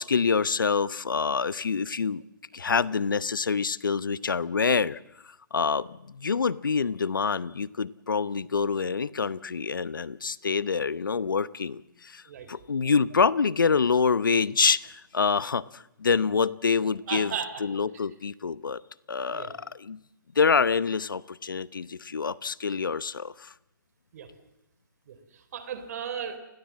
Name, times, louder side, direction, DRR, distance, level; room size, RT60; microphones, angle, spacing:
voice 1, 0.0-2.2 2.5-5.0 5.5-12.2 12.5-17.3 17.6-18.8 19.1-20.0 20.3-23.5, left 5 dB, 75° left, 19 dB, 0.9 m, -26 dB
voice 2, 17.1-17.6 19.3-19.5 24.1-24.3 25.1-26.4, right 7 dB, 50° right, 9 dB, 3.8 m, -35 dB
29.5 x 20.5 x 7.5 m, 0.89 s
figure-of-eight pair, 135°, 11 cm